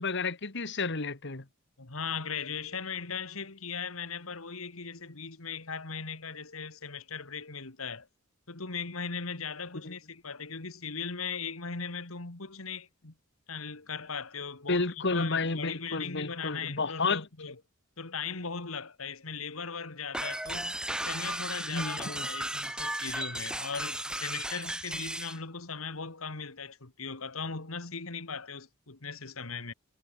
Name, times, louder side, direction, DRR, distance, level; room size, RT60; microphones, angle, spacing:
voice 1, 0.0-1.4 14.7-17.2 21.7-22.3, left 3 dB, 60° left, 1.9 m, -31 dB
voice 2, 1.8-8.1 8.5-13.1 13.5-17.6 18.0-20.8 21.0-29.7, left 5 dB, 90° left, 2.2 m, -38 dB
sound 1, 20.1-25.4, right 1 dB, 5° right, 1.6 m, -35 dB
head